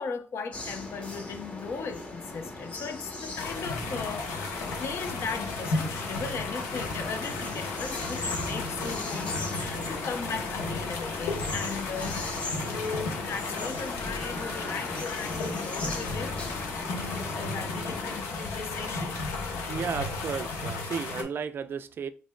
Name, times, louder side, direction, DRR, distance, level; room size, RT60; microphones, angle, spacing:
voice 1, 0.0-19.2, left 5 dB, 55° left, 0.6 m, -37 dB
sound 1, 0.5-18.2, left 2 dB, 25° left, 0.9 m, -39 dB
sound 2, 3.4-21.2, left 3 dB, 85° left, 0.9 m, -34 dB
voice 2, 19.7-22.1, right 6 dB, 45° right, 0.3 m, -34 dB
5.1 x 3.0 x 2.2 m
cardioid pair, 90°, 5 cm